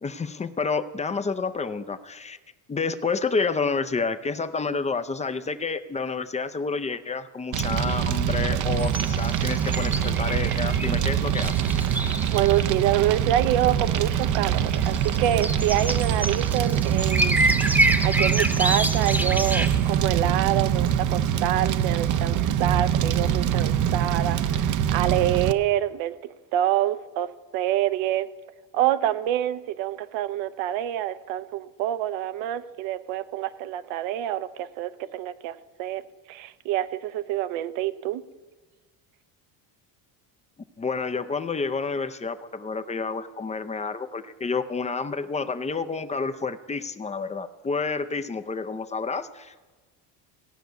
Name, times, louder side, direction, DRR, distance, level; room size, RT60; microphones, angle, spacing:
voice 1, 0.0-2.4 2.7-11.5 40.8-49.6, left 4 dB, 15° left, 11 dB, 0.5 m, -29 dB
Fire, 7.5-25.5, right 9 dB, 40° right, 0.6 m, -24 dB
sound 1, 8.8-12.7 12.9-13.0 14.0-14.1 14.5-20.0, right 1 dB, 5° right, 1.0 m, -27 dB
voice 2, 12.3-17.5 18.0-26.1 26.5-27.3 27.5-28.3 28.7-36.0 36.3-38.2, right 12 dB, 75° right, 13 dB, 0.9 m, -26 dB
16.5 x 5.7 x 9.2 m, 1.3 s
cardioid pair, 125°, 47 cm